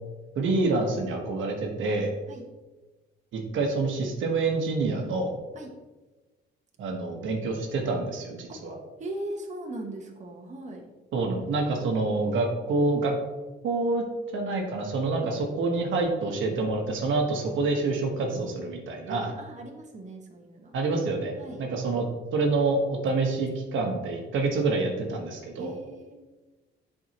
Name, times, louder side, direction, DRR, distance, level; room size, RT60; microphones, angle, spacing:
voice 1, 0.4-2.1 3.3-5.3 6.8-8.8 11.1-13.1 13.6-14.0 14.3-19.3 20.7-21.3 21.6-22.0 22.3-25.7, right 3 dB, 75° right, 2 dB, 1.2 m, -27 dB
voice 2, 9.0-10.9 15.1-15.3 19.1-20.8 21.4-21.6 25.6-26.1, right 1 dB, 35° right, 1 dB, 1.0 m, -39 dB
7.6 x 4.8 x 2.9 m, 1.2 s
cardioid pair, 90°, 20 cm